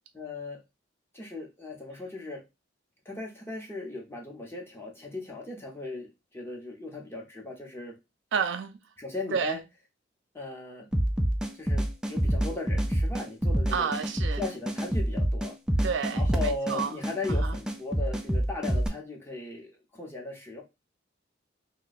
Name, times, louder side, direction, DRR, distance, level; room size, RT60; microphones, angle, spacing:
voice 1, 0.1-0.6 1.1-2.4 3.0-6.1 6.3-7.9 9.0-9.6 10.3-10.9 11.6-13.9 14.3-15.5 16.1-20.6, left 2 dB, 15° left, 0.9 m, -37 dB
voice 2, 8.3-8.8 9.3-9.6 13.7-14.4 15.8-17.0 17.4-17.6, right 6 dB, 70° right, 0.4 m, -30 dB
sound 1, 10.9-18.9, right 1 dB, 5° right, 0.3 m, -27 dB
2.7 x 2.3 x 4.0 m
head